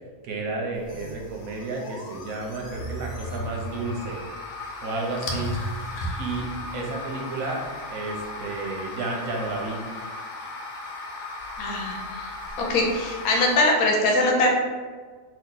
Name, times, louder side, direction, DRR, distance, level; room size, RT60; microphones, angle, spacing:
voice 1, 0.2-4.2 4.8-5.5 6.2-9.8, right 3 dB, 80° right, 0 dB, 1.1 m, -32 dB
sound 1, 0.7-13.7, left 2 dB, 65° left, 0.9 m, -36 dB
voice 2, 11.6-12.3 12.7-14.5, left 2 dB, 85° left, 0 dB, 1.1 m, -22 dB
2.8 x 2.6 x 3.7 m, 1.5 s
omnidirectional pair, 1.5 m